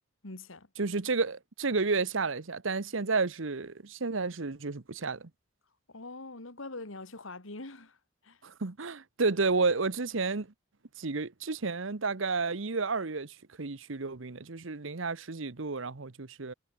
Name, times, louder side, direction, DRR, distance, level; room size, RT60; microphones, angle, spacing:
voice 1, 0.2-0.7 5.9-8.0 8.2-8.4, left 2 dB, 85° left, 2.5 m, -43 dB
voice 2, 0.8-5.3 8.4-10.5 11.0-16.5, right 4 dB, 75° right, 1.1 m, -31 dB
head